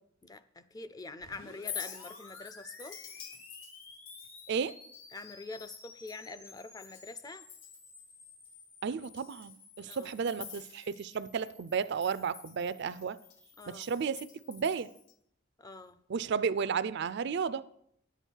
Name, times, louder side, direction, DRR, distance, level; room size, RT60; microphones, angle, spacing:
voice 1, 0.2-3.0 5.1-7.4 9.8-10.1 13.6-13.9 15.6-16.0, left 3 dB, 20° left, 0.4 m, -45 dB
sound 1, 1.2-15.1, left 3 dB, 85° left, 1.8 m, -55 dB
Chink clink, 1.5-7.1 7.4-8.0 8.4-8.5 9.0-11.4 11.7-15.1, left 8 dB, 65° left, 1.0 m, -48 dB
voice 2, 8.8-13.2 13.7-14.9 16.1-17.7, right 6 dB, 55° right, 0.4 m, -33 dB
10.5 x 8.0 x 4.6 m
head